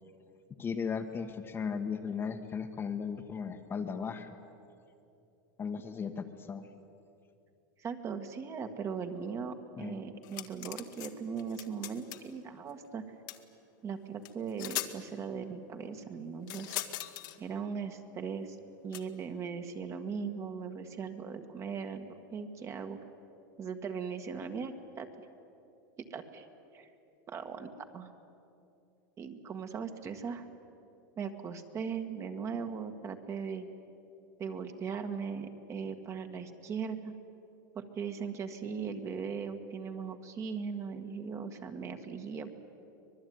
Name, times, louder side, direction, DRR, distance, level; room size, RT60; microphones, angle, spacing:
voice 1, 0.6-4.3 5.6-6.7 9.8-10.0, left 6 dB, 20° left, 6 dB, 1.4 m, -36 dB
voice 2, 7.8-13.0 13.8-16.8 17.4-18.6 18.8-23.0 23.6-25.1 26.1-26.5 26.7-26.9 27.3-28.1 29.2-30.5 31.2-33.7 34.4-37.1 37.8-42.5, right 6 dB, 25° right, 7 dB, 1.7 m, -39 dB
sound 1, 10.2-11.1 11.4-12.3 13.3-13.4 14.2-14.3 14.6-14.9 16.5-17.4 18.9-19.0, left 15 dB, 65° left, 1.8 m, -39 dB
25.0 x 20.0 x 9.5 m, 2.7 s
supercardioid pair, 145°, 11 cm